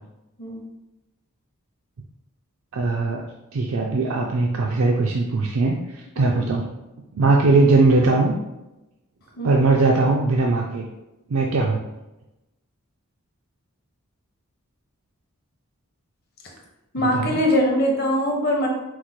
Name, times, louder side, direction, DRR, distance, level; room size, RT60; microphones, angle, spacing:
voice 1, 2.7-3.2 3.5-6.7 7.1-8.3 9.4-10.8 11.3-11.8 17.0-17.4, right 3 dB, 65° right, 0 dB, 0.4 m, -20 dB
voice 2, 16.9-18.7, equal, 45° left, 0 dB, 0.8 m, -22 dB
4.6 x 2.2 x 4.1 m, 0.99 s
head